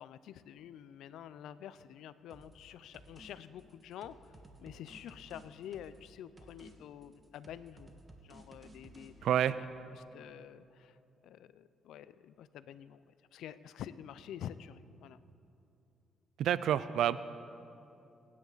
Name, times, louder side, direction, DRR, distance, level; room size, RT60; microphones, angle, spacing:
voice 1, 0.0-7.9 8.2-9.7 9.9-11.0 11.2-13.0 13.3-15.2, left 10 dB, 80° left, 15 dB, 0.5 m, -48 dB
sound 1, 2.3-2.6 2.9-3.3 3.6-6.1 6.4-6.7 7.0-9.1, right 2 dB, 30° right, 1.7 m, -56 dB
voice 2, 9.2-9.5 16.4-17.2, right 10 dB, 75° right, 15 dB, 0.4 m, -28 dB
24.5 x 9.7 x 4.0 m, 2.8 s
cardioid pair, 90°, 0 cm